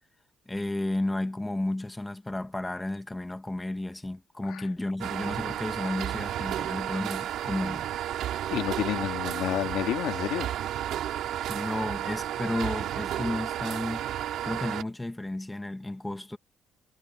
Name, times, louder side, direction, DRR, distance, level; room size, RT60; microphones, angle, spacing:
voice 1, 0.5-7.9 11.5-14.1 14.4-16.4, left 1 dB, 10° left, 1.5 m, -32 dB
sound 1, 5.0-14.8, right 11 dB, 70° right, 4.1 m, -32 dB
voice 2, 8.5-10.5, left 13 dB, 85° left, 2.1 m, -30 dB
cardioid pair, 120°, 0 cm